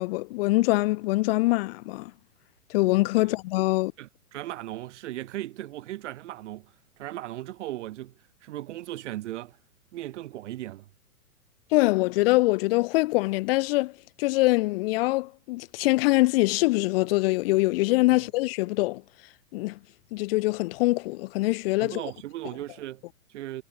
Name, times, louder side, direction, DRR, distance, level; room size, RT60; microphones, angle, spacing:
voice 1, 0.0-2.1 2.7-3.9 11.7-13.9 14.2-19.0 19.5-19.8 20.1-22.0, left 21 dB, 40° left, 1.6 m, -24 dB
voice 2, 4.0-6.7 7.0-8.1 8.4-9.6 9.9-10.9 18.1-18.2 21.8-23.6, right 14 dB, 50° right, 5.4 m, -37 dB
figure-of-eight pair, 115°, 45 cm